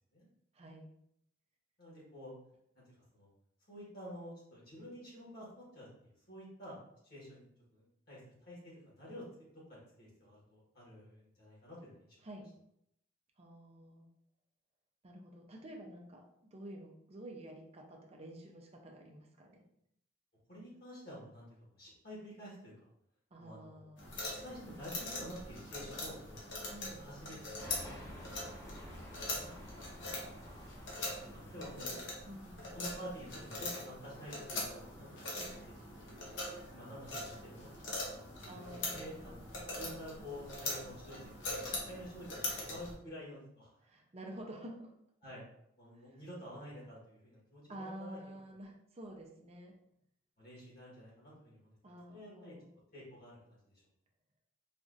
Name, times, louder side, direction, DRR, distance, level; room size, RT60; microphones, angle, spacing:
voice 1, 0.5-0.9 12.2-12.5 13.4-14.1 15.0-16.3 16.5-19.6 23.3-24.2 26.7-27.0 29.4-30.2 31.6-32.7 38.5-39.7 43.8-44.9 45.9-46.2 47.7-49.7 51.8-52.7, right 1 dB, 35° right, 1 dB, 0.5 m, -50 dB
voice 2, 1.8-2.3 2.7-2.8 3.1-3.3 3.7-6.8 7.0-7.5 7.7-9.2 9.5-12.0 20.5-22.7 23.4-23.9 24.1-26.5 27.0-27.8 31.3-32.0 32.7-35.1 35.3-35.6 36.0-36.4 36.7-38.0 38.4-39.4 39.7-43.7 45.2-45.4 45.8-48.2 50.4-51.7 52.1-52.5 52.9-53.4, equal, 55° left, -6 dB, 1.5 m, -49 dB
sound 1, 24.0-42.9, left 2 dB, 70° left, 0.9 m, -42 dB
sound 2, 27.6-32.5, left 1 dB, 20° left, 0.7 m, -51 dB
4.1 x 2.5 x 2.5 m, 0.75 s
head